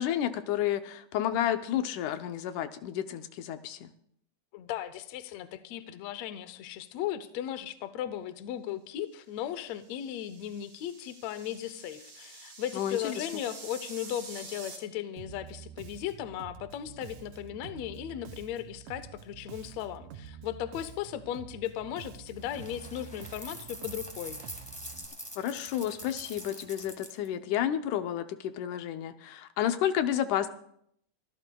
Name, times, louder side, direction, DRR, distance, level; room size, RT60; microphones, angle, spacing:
voice 1, 0.0-3.9 12.7-13.3 25.4-30.5, left 11 dB, 90° left, 9 dB, 2.3 m, -31 dB
voice 2, 4.5-24.4, left 11 dB, 75° left, 11 dB, 1.7 m, -37 dB
sound 1, 9.6-14.8, right 4 dB, 60° right, 4.7 m, -47 dB
Bass guitar, 15.2-25.1, right 9 dB, 90° right, 2.2 m, -48 dB
sound 2, 22.4-27.3, equal, 5° left, 0.5 m, -44 dB
25.0 x 14.5 x 2.3 m, 0.70 s
omnidirectional pair, 3.4 m